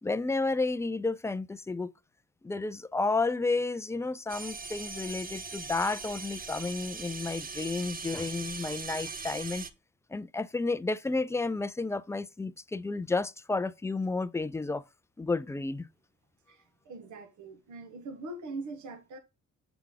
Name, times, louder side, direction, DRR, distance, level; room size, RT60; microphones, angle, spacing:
voice 1, 0.0-1.9 2.4-9.7 10.1-14.8 15.2-15.9, left 3 dB, 10° left, 0.3 m, -31 dB
sound 1, 4.3-9.7, right 4 dB, 30° right, 0.7 m, -40 dB
voice 2, 16.5-19.2, right 2 dB, 75° right, 1.4 m, -42 dB
7.0 x 4.7 x 3.8 m
cardioid pair, 90°, 30 cm